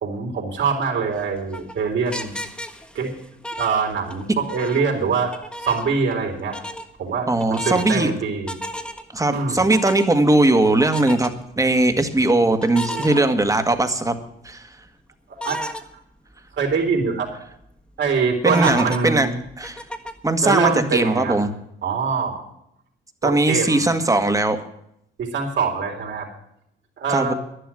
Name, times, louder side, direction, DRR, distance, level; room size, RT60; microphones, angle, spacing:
voice 1, 0.0-2.4 2.9-3.2 3.5-5.3 5.6-6.6 7.0-8.6 9.3-9.7 12.9-13.2 15.4-15.6 16.6-17.3 18.0-19.4 20.4-21.4 21.8-22.4 23.2-23.9 25.2-26.3 27.0-27.3, right 5 dB, 65° right, 2 dB, 3.8 m, -24 dB
sound 1, 1.1-4.2 4.5-6.2 6.5-6.8 7.4-8.0 8.5-9.1 9.6-10.4 10.8-11.3 12.6-13.8 14.3-14.4 15.4-15.8 16.3-16.4 16.7-16.8 17.3-17.6 18.5-20.3, equal, 5° left, 1.6 m, -33 dB
voice 2, 7.3-8.1 9.1-14.2 14.4-14.6 18.4-19.3 19.6-19.8 20.2-21.5 23.2-24.6 27.1-27.3, right 2 dB, 15° right, 7 dB, 1.7 m, -19 dB
11.5 x 11.0 x 7.6 m, 0.75 s
cardioid pair, 90°, 20 cm